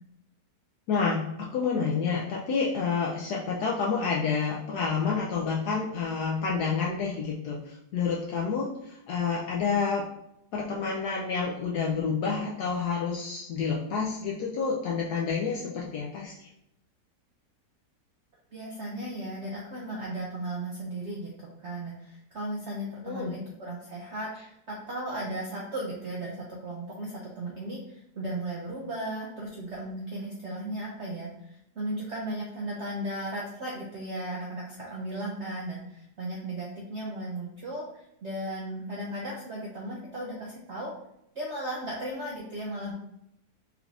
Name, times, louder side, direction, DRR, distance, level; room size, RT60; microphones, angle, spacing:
voice 1, 0.9-10.0 10.5-16.5 23.0-23.3, left 5 dB, 75° left, -3 dB, 1.1 m, -29 dB
voice 2, 18.5-40.9 41.3-42.9, right 1 dB, 60° right, -3 dB, 0.7 m, -36 dB
4.8 x 2.5 x 3.3 m, 0.79 s
omnidirectional pair, 1.8 m